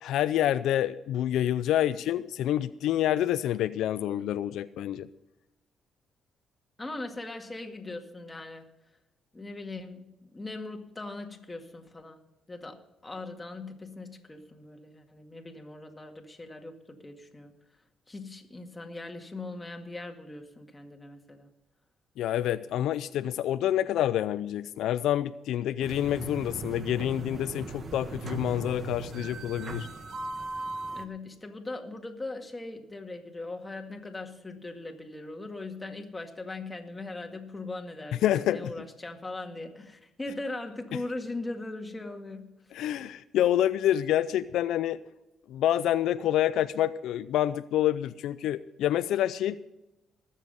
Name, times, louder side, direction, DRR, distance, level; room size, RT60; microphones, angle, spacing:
voice 1, 0.0-5.1 22.2-29.9 38.2-38.7 42.7-45.0 45.5-49.6, left 12 dB, 80° left, 13 dB, 0.4 m, -27 dB
voice 2, 6.8-8.7 9.3-12.2 12.5-17.5 18.1-21.5 31.0-42.5, left 2 dB, 20° left, 3 dB, 2.0 m, -40 dB
sound 1, 25.8-31.1, right 2 dB, 45° right, 1.3 m, -38 dB
19.5 x 7.4 x 5.3 m, 0.93 s
cardioid pair, 90°, 0 cm